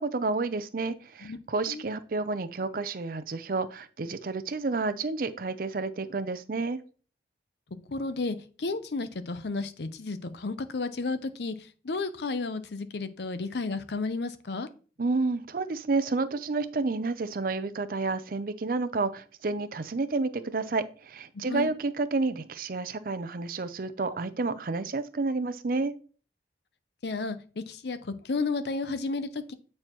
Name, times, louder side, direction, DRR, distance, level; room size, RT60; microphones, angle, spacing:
voice 1, 0.0-6.8 15.0-25.9, right 3 dB, 50° right, 13 dB, 0.5 m, -30 dB
voice 2, 7.9-11.5 11.8-14.7 21.3-21.7 27.0-29.5, left 3 dB, 70° left, 12 dB, 0.6 m, -32 dB
8.7 x 4.3 x 3.0 m, 0.38 s
head